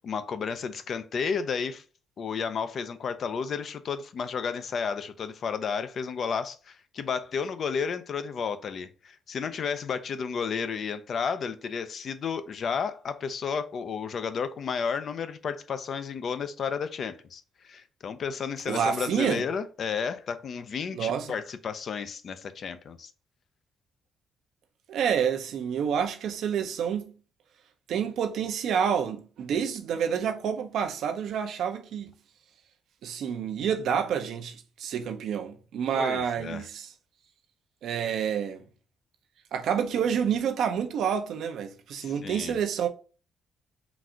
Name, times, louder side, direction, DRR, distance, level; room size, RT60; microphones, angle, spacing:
voice 1, 0.0-1.8 2.2-23.1 35.9-36.6 41.9-42.6, left 6 dB, 55° left, 0.5 m, -32 dB
voice 2, 18.7-19.4 20.9-21.3 24.9-27.1 27.9-32.1 33.0-36.9 37.8-38.6 39.5-42.9, right 8 dB, 75° right, 0.6 m, -28 dB
4.0 x 2.5 x 4.3 m
cardioid pair, 90°, 0 cm